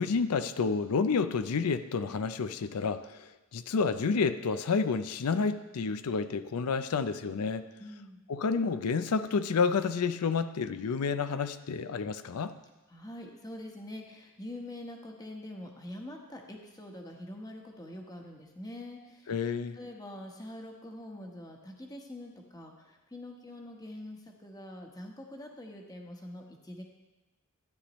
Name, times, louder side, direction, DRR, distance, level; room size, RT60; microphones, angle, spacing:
voice 1, 0.0-7.6 8.3-12.5 19.3-19.8, left 5 dB, 85° left, 11 dB, 0.5 m, -30 dB
voice 2, 7.8-8.2 12.9-19.3 19.8-26.8, left 1 dB, 15° left, 2 dB, 1.1 m, -44 dB
13.0 x 9.9 x 3.0 m, 1.1 s
head